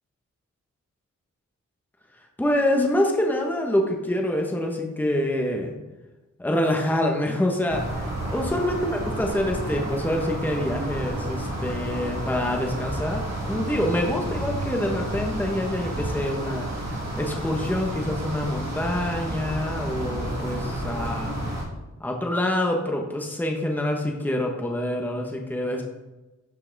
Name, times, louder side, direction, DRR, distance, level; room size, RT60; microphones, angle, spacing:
voice 1, 2.4-5.7 6.4-8.0 8.3-8.9 9.2-16.7 17.2-21.3 22.0-25.8, left 1 dB, 5° left, 1 dB, 1.1 m, -26 dB
sound 1, 7.7-21.6, right 1 dB, 60° right, 2.5 m, -31 dB
12.0 x 5.6 x 4.0 m, 1.1 s
wide cardioid pair, 145°, 30 cm